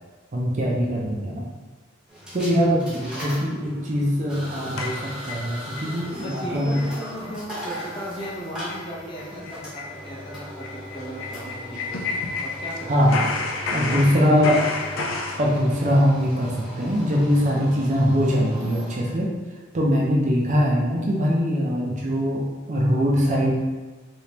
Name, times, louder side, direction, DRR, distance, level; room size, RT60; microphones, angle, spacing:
voice 1, 0.3-1.5 2.3-6.8 12.9-13.3 13.7-14.6 15.4-19.3 19.7-23.5, equal, 35° right, -3 dB, 0.5 m, -22 dB
sound 1, 2.1-19.0, equal, 5° right, 1.0 m, -39 dB
sound 2, 4.8-5.9 6.3-6.4 6.7-7.0 7.3-7.4 7.7-7.9 8.2-8.4 8.7-8.8 9.2-12.8 13.1-15.4, left 3 dB, 70° left, 0.5 m, -30 dB
voice 2, 6.2-12.1 12.4-13.5 13.9-15.1, equal, 25° left, -5 dB, 0.7 m, -37 dB
3.3 x 3.0 x 2.9 m, 1.3 s
head